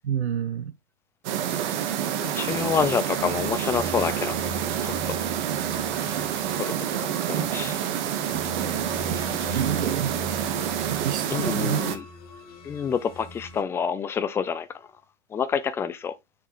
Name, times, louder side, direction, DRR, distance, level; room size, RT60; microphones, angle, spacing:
voice 1, 0.0-0.7 9.5-10.1 10.9-11.8, right 9 dB, 70° right, 0.9 m, -28 dB
sound 1, 1.2-12.0, right 10 dB, 40° right, 1.5 m, -28 dB
voice 2, 2.2-4.4 4.8-4.9 6.6-6.7 7.0-7.8 11.3-12.0 12.6-14.7 15.3-16.1, left 6 dB, 5° left, 0.5 m, -27 dB
sound 2, 2.4-13.6, left 2 dB, 25° left, 1.9 m, -41 dB
7.0 x 4.8 x 3.8 m
figure-of-eight pair, 115°, 35 cm